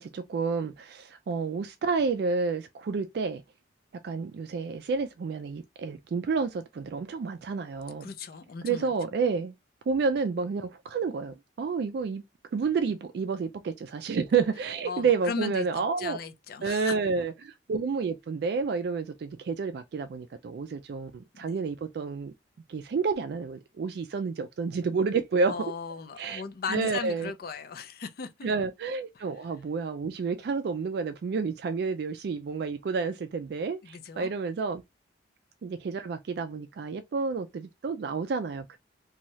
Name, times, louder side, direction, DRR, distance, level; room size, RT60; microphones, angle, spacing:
voice 1, 0.0-3.4 4.0-8.1 8.6-9.5 9.9-12.2 12.5-16.2 16.6-22.3 22.7-25.5 26.2-26.4 26.7-27.3 28.4-34.8 35.6-38.8, right 5 dB, 60° right, 0.3 m, -30 dB
voice 2, 8.0-8.9 14.9-16.9 21.4-21.6 25.5-28.5 33.8-34.3, left 5 dB, 55° left, 0.4 m, -37 dB
2.7 x 2.3 x 3.0 m
head